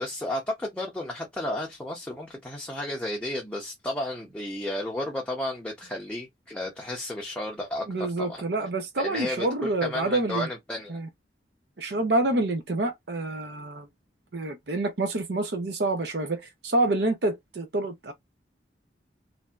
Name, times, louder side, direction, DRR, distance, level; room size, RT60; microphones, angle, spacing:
voice 1, 0.0-8.4 9.0-11.0, left 1 dB, 5° left, 0.6 m, -33 dB
voice 2, 7.9-10.5 10.9-11.1 11.8-13.9 14.3-18.1, right 2 dB, 65° right, 0.7 m, -27 dB
3.2 x 2.7 x 2.3 m
head